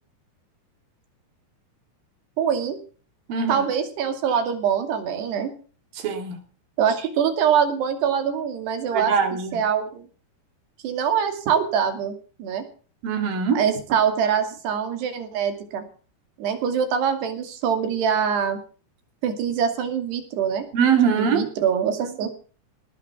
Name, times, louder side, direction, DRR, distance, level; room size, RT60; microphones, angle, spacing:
voice 1, 2.4-2.8 3.5-5.5 6.8-9.1 9.5-10.1 10.8-12.1 12.4-12.6 13.6-15.8 16.4-18.6 19.2-20.7 21.1-22.3, right 7 dB, 80° right, 7 dB, 4.7 m, -24 dB
voice 2, 3.3-3.7 5.9-6.4 8.9-9.6 13.0-13.6 20.7-21.4, right 6 dB, 60° right, 6 dB, 4.0 m, -22 dB
18.5 x 8.5 x 7.1 m, 0.40 s
omnidirectional pair, 4.7 m